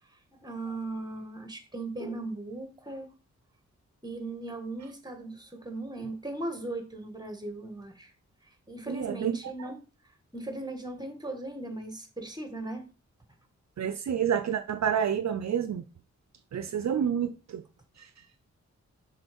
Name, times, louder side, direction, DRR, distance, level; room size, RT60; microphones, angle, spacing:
voice 1, 0.3-3.1 4.0-8.1 8.7-9.8 10.3-12.9, right 2 dB, 15° right, 1.9 m, -38 dB
voice 2, 8.9-9.4 13.8-15.8 16.5-17.6 18.0-18.1, right 8 dB, 65° right, 0.6 m, -29 dB
6.0 x 3.8 x 5.3 m
cardioid pair, 55°, 30 cm